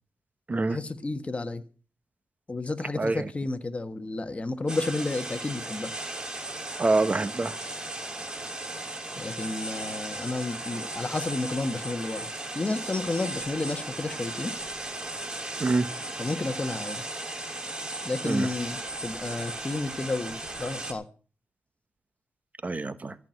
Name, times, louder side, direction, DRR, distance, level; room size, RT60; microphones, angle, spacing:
voice 1, 0.7-1.6 2.5-5.9 9.2-12.3 12.5-14.5 16.2-17.0 18.0-21.0, left 2 dB, 25° left, 1.4 m, -31 dB
voice 2, 3.0-3.3 6.8-7.6 15.6-15.9 18.2-18.5 22.6-23.2, right 3 dB, 30° right, 1.1 m, -25 dB
sound 1, 4.7-20.9, right 2 dB, 15° right, 3.3 m, -36 dB
14.0 x 6.0 x 9.1 m
cardioid pair, 85°, 5 cm